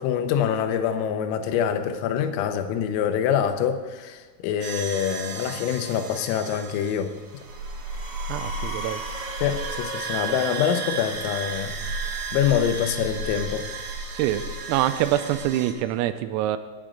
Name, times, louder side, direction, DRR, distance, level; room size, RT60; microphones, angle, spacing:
voice 1, 0.0-7.1 9.4-13.7, left 8 dB, 85° left, 8 dB, 3.5 m, -25 dB
sound 1, 4.6-15.7, right 3 dB, 60° right, 3.4 m, -33 dB
voice 2, 8.3-9.0 14.2-14.4 14.7-16.6, right 13 dB, 90° right, 10 dB, 3.4 m, -25 dB
17.5 x 7.6 x 5.2 m, 1.4 s
omnidirectional pair, 5.9 m